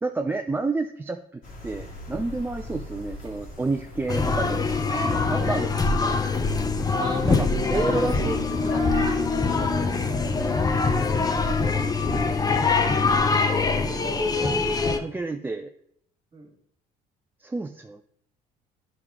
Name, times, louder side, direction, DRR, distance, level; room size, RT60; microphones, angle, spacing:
voice 1, 0.0-4.8 5.1-5.7 6.0-6.1 7.3-8.8 14.4-15.7 17.4-18.0, right 3 dB, 15° right, 4 dB, 0.4 m, -30 dB
sound 1, 1.4-11.7, left 1 dB, 60° left, 2.1 m, -41 dB
sound 2, 4.1-15.0, left 4 dB, 25° left, 0.7 m, -23 dB
voice 2, 4.9-5.4 7.0-8.1 8.6-10.3 11.5-13.2 14.0-14.6 16.3-16.5, right 3 dB, 30° right, 4 dB, 1.8 m, -39 dB
9.9 x 4.8 x 3.6 m, 0.69 s
cardioid pair, 95°, 16 cm